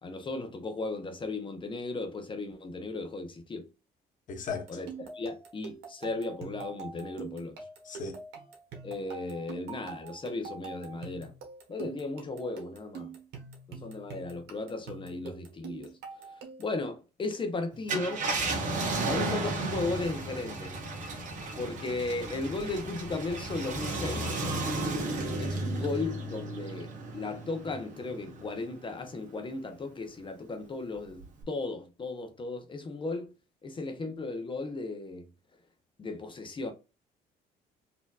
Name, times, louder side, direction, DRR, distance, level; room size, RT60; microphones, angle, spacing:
voice 1, 0.0-3.7 4.7-7.6 8.8-11.3 11.7-13.1 13.7-15.9 16.6-18.3 19.0-20.8 21.6-24.3 25.4-33.3 33.6-35.2 36.0-36.7, left 3 dB, 30° left, 0.8 m, -36 dB
voice 2, 4.3-4.7 7.8-8.2, left 5 dB, 50° left, 1.0 m, -36 dB
sound 1, 4.5-16.8, right 5 dB, 85° right, 1.2 m, -45 dB
Car, 17.7-28.6 29.1-29.2 31.2-31.4, right 2 dB, 50° right, 1.3 m, -34 dB
4.2 x 2.8 x 2.4 m
cardioid pair, 110°, 17 cm